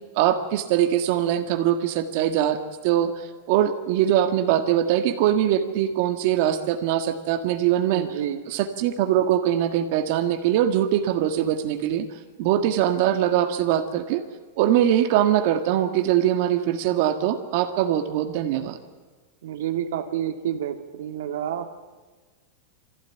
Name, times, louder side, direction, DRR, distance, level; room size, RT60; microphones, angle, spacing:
voice 1, 0.1-2.6 2.8-8.1 8.5-12.1 12.4-14.2 14.6-18.8, right 11 dB, 50° right, 6 dB, 1.7 m, -22 dB
voice 2, 7.9-8.4 19.4-21.8, right 10 dB, 75° right, 6 dB, 1.8 m, -29 dB
22.5 x 15.5 x 9.1 m, 1.4 s
supercardioid pair, 155°, 0 cm